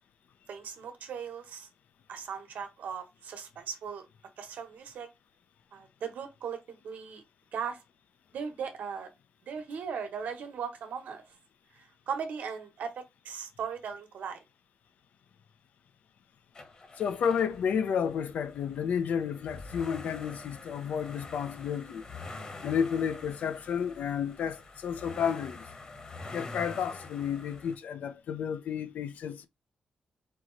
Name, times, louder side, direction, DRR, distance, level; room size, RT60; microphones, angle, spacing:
voice 1, 0.5-1.7 2.1-4.1 4.4-5.1 5.7-7.2 7.5-7.8 8.3-9.1 9.5-11.2 11.7-14.4, right 6 dB, 80° right, 1.2 m, -38 dB
sound 1, 16.5-27.8, left 3 dB, 30° left, 1.1 m, -46 dB
voice 2, 17.0-22.0 22.6-25.7 26.3-29.5, left 7 dB, 75° left, 0.6 m, -31 dB
4.6 x 3.0 x 3.9 m
wide cardioid pair, 175°, 3 cm